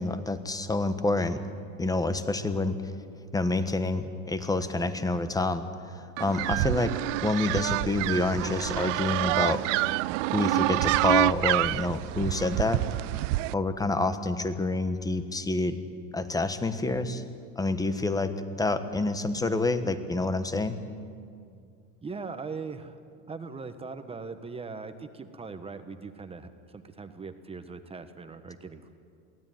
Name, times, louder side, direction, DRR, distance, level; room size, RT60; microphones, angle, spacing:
voice 1, 0.0-1.4 1.8-2.8 3.3-9.7 10.3-12.8 13.5-15.8 16.1-17.2 17.6-18.3 18.6-20.8, left 2 dB, 10° left, 11 dB, 1.3 m, -28 dB
sound 1, 6.2-13.5, right 20 dB, 75° right, 0.5 m, -27 dB
voice 2, 22.0-23.0 23.3-28.9, right 4 dB, 15° right, 9 dB, 1.3 m, -40 dB
23.0 x 16.5 x 9.3 m, 2.3 s
supercardioid pair, 120°, 37 cm